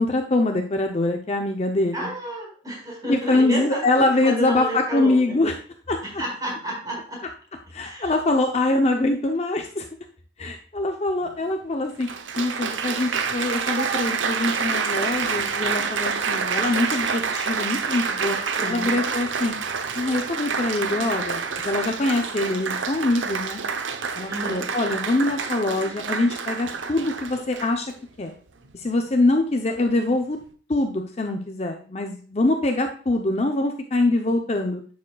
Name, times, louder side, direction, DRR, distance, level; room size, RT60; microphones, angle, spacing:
voice 1, 0.0-2.1 3.1-5.6 5.9-6.0 7.7-9.9 10.4-12.1 12.4-18.4 18.7-19.5 19.9-21.4 21.6-23.6 24.2-27.9 28.2-28.3 28.7-30.4 30.7-34.8, left 2 dB, 35° left, 4 dB, 0.6 m, -24 dB
voice 2, 1.9-5.4 6.2-7.2 7.8-8.1 18.6-19.0 24.3-24.6, equal, 20° right, -4 dB, 4.5 m, -31 dB
Applause, 11.2-11.3 12.0-27.9 28.6-29.0, right 5 dB, 80° right, 0.8 m, -28 dB
10.5 x 7.3 x 2.3 m, 0.42 s
head